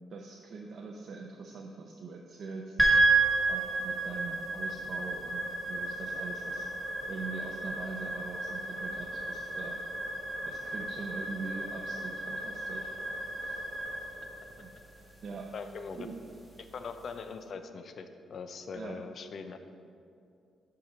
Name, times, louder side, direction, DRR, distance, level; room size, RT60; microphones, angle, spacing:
voice 1, 0.1-2.8 3.5-6.7 7.1-9.8 10.5-12.9 13.4-13.6 14.6-14.7 15.2-15.5 15.9-16.2 18.7-19.0, right 4 dB, 50° right, 0 dB, 0.5 m, -42 dB
sound 1, 2.8-17.2, right 2 dB, ahead, 1.1 m, -32 dB
voice 2, 15.5-16.1 16.7-19.6, left 5 dB, 50° left, 9 dB, 0.4 m, -41 dB
7.0 x 4.8 x 5.0 m, 2.5 s
cardioid pair, 135°, 0 cm